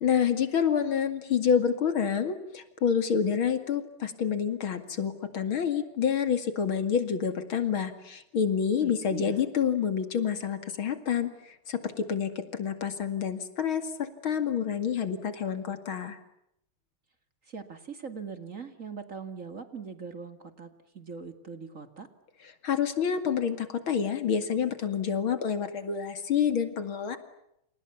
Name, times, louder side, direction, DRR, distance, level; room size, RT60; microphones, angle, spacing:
voice 1, 0.0-16.2 22.4-27.2, left 7 dB, 75° left, 9 dB, 3.1 m, -28 dB
voice 2, 8.8-9.4 17.5-22.1, right 5 dB, 40° right, 8 dB, 2.5 m, -41 dB
29.0 x 28.5 x 7.1 m, 0.79 s
omnidirectional pair, 2.3 m